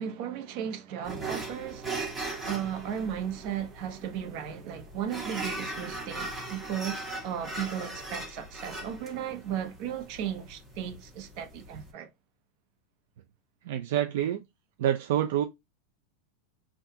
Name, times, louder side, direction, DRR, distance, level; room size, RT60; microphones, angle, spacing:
voice 1, 0.0-2.1 2.4-12.1, right 9 dB, 45° right, 0.9 m, -35 dB
sound 1, 1.0-11.9, right 2 dB, 10° right, 1.5 m, -39 dB
voice 2, 13.7-14.4 14.8-15.4, right 11 dB, 65° right, 0.4 m, -27 dB
5.7 x 2.5 x 2.8 m
supercardioid pair, 165°, 0 cm